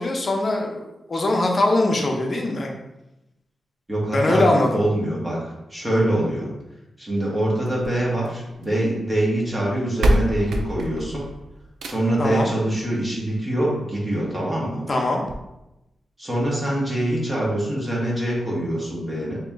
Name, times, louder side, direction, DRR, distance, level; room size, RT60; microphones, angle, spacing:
voice 1, 0.0-2.7 4.1-4.8 12.2-12.5 14.9-15.2, left 2 dB, 40° left, 1 dB, 0.7 m, -21 dB
voice 2, 3.9-5.4 5.7-6.5 7.0-11.2 11.8-14.8 16.2-19.4, right 1 dB, 20° right, -5 dB, 1.3 m, -24 dB
sound 1, 7.6-8.8 9.6-9.7 10.0-12.3 13.6-13.7 14.2-14.3 14.6-14.7 15.2-15.4, equal, 85° right, 0.4 m, -25 dB
3.0 x 2.9 x 3.6 m, 0.92 s
cardioid pair, 85°, 0 cm